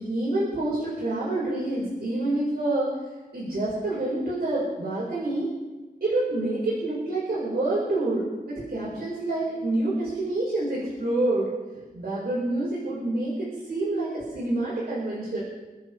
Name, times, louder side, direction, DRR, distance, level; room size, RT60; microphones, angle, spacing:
voice 1, 0.0-3.0 3.3-5.5 6.0-15.4, right 2 dB, 90° right, -7 dB, 5.4 m, -27 dB
28.0 x 11.0 x 3.6 m, 1.2 s
wide cardioid pair, 95°, 16 cm